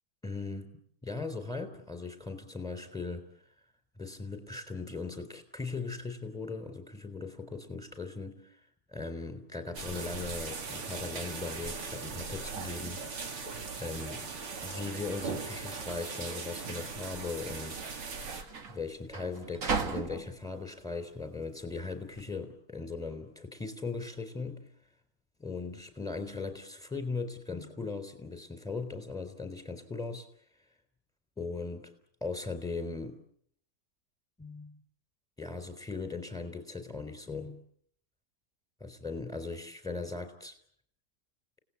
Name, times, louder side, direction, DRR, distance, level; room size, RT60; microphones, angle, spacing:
voice 1, 0.2-0.7 1.0-3.2 4.0-8.6 8.9-14.3 14.6-17.9 18.7-24.7 25.4-30.3 31.4-31.9 32.2-33.2 34.4-34.8 35.4-37.6 38.8-40.6, left 3 dB, ahead, 9 dB, 3.6 m, -39 dB
sound 1, 9.7-18.4, right 4 dB, 80° right, 3.4 m, -39 dB
sound 2, 12.5-22.2, right 5 dB, 40° right, 1.7 m, -40 dB
29.5 x 18.5 x 8.5 m, 0.68 s
omnidirectional pair, 2.4 m